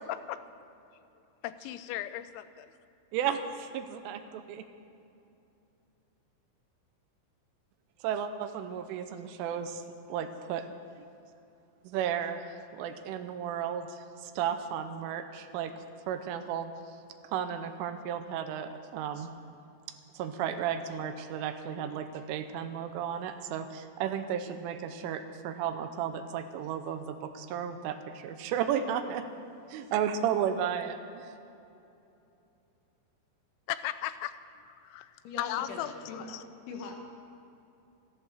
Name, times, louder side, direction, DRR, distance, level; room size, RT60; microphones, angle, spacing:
voice 1, 0.1-0.4 1.4-2.7 33.7-34.3 34.7-35.1 35.4-36.4, left 13 dB, 90° left, 13 dB, 3.3 m, -36 dB
voice 2, 3.1-4.6 8.0-9.8 10.1-10.7 11.8-12.4 12.7-15.7 16.1-16.7 17.3-19.3 20.1-29.2 29.7-31.3, right 8 dB, 80° right, 8 dB, 3.1 m, -33 dB
voice 3, 35.3-36.3 36.7-37.0, left 4 dB, 70° left, 3 dB, 3.5 m, -41 dB
13.5 x 13.5 x 6.5 m, 2.7 s
omnidirectional pair, 5.9 m